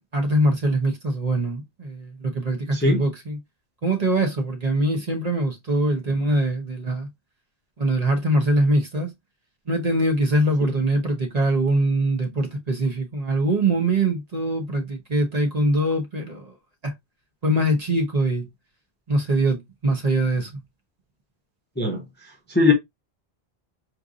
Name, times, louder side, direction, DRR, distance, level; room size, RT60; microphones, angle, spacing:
voice 1, 0.0-3.4 3.8-7.1 7.8-9.1 9.7-16.5 16.8-16.9 17.4-18.5 19.1-20.6, right 1 dB, 40° right, 1.0 m, -23 dB
voice 2, 2.7-3.0 21.8-22.0 22.5-22.7, left 3 dB, 10° left, 0.6 m, -19 dB
4.5 x 2.6 x 2.4 m
omnidirectional pair, 1.1 m